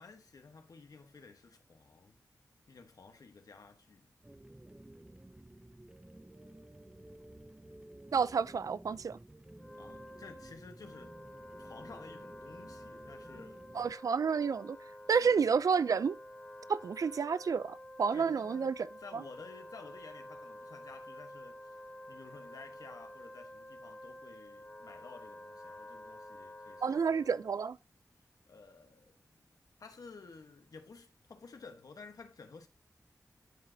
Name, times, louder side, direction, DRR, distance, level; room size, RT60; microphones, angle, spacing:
voice 1, 0.0-2.2 2.7-4.1 9.8-11.2 11.6-13.7 15.1-15.7 18.1-21.8 22.1-27.3 28.5-29.2 29.8-32.7, left 4 dB, 80° left, 1.1 m, -53 dB
sound 1, 4.2-13.9, right 1 dB, 15° right, 0.6 m, -54 dB
voice 2, 8.1-9.2 13.7-14.8 15.1-16.2 16.7-18.9 19.1-19.2 26.8-27.8, right 6 dB, 70° right, 0.4 m, -30 dB
Wind instrument woodwind instrument, 9.5-27.6, equal, 15° left, 0.9 m, -50 dB
10.5 x 4.9 x 2.7 m
wide cardioid pair, 95°, 6 cm